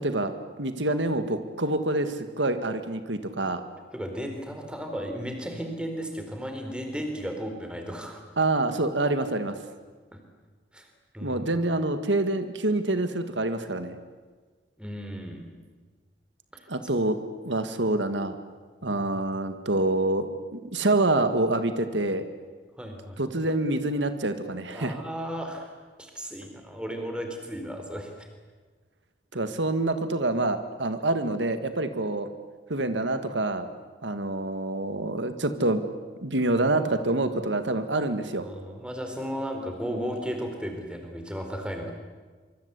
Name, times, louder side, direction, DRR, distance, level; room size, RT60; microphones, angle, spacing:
voice 1, 0.0-3.6 8.4-9.6 11.2-14.0 16.7-17.2 17.5-18.4 18.8-22.2 23.2-24.9 29.3-32.3 32.7-33.7 34.0-35.8 36.2-38.5, right 2 dB, 90° right, 9 dB, 1.9 m, -26 dB
voice 2, 3.9-8.2 10.1-10.2 10.7-10.9 11.1-11.4 14.8-15.6 18.8-19.2 22.8-23.2 24.7-25.7 26.0-28.3 38.4-41.9, equal, 5° right, 4 dB, 4.2 m, -35 dB
25.5 x 24.5 x 8.4 m, 1.4 s
head